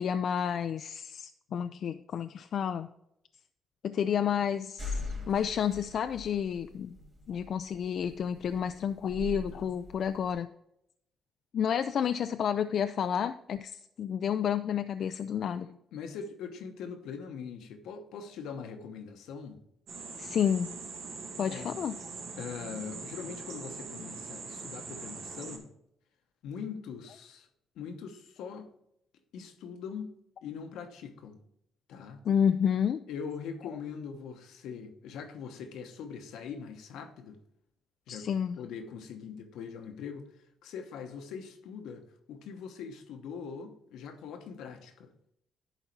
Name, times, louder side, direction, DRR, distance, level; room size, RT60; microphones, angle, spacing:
voice 1, 0.0-2.9 3.8-7.0 7.3-10.5 11.5-15.7 20.2-20.7 21.4-22.0 32.3-33.0 38.1-38.6, left 8 dB, 60° left, 0.3 m, -30 dB
sound 1, 4.8-10.3, left 1 dB, 35° right, 2.9 m, -41 dB
voice 2, 15.6-19.6 21.5-21.8 22.4-25.7 26.4-27.5 27.7-28.7 29.3-30.1 30.4-31.4 31.9-32.3 33.1-37.4 38.1-38.3 38.6-45.1, left 6 dB, 85° left, 1.0 m, -42 dB
sound 2, 19.9-25.6, right 4 dB, 75° right, 1.8 m, -42 dB
11.0 x 4.0 x 4.6 m
cardioid pair, 90°, 0 cm